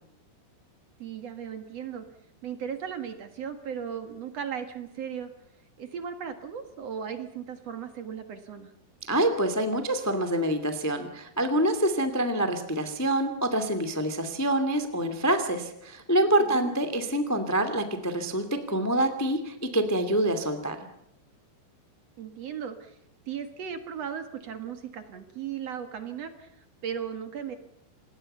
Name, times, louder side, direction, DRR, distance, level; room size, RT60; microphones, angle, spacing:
voice 1, 1.0-2.0 2.4-5.3 5.8-8.7 16.5-16.7 22.2-23.0 23.3-27.6, right 8 dB, 55° right, 8 dB, 1.9 m, -36 dB
voice 2, 9.1-20.8, right 1 dB, 15° left, 8 dB, 0.6 m, -26 dB
27.5 x 20.0 x 5.6 m, 0.77 s
omnidirectional pair, 5.0 m